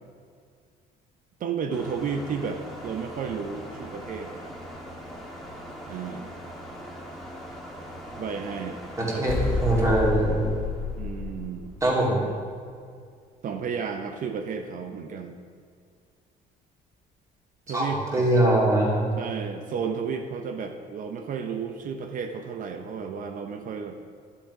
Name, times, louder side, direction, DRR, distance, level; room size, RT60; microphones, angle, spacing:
voice 1, 1.4-4.5 5.9-6.3 8.2-8.8 9.1-9.2 11.0-11.7 12.1-12.3 13.4-15.4 17.7-18.3 19.2-24.0, right 6 dB, 50° right, 5 dB, 0.8 m, -33 dB
sound 1, 1.7-11.9, equal, ahead, 1.7 m, -41 dB
voice 2, 9.0-9.3 9.6-10.4 11.8-12.2 17.7-19.1, right 1 dB, 20° right, -4 dB, 2.9 m, -22 dB
sound 2, 9.3-12.0, left 3 dB, 55° left, 1.2 m, -29 dB
12.0 x 7.1 x 4.8 m, 2.2 s
cardioid pair, 110°, 17 cm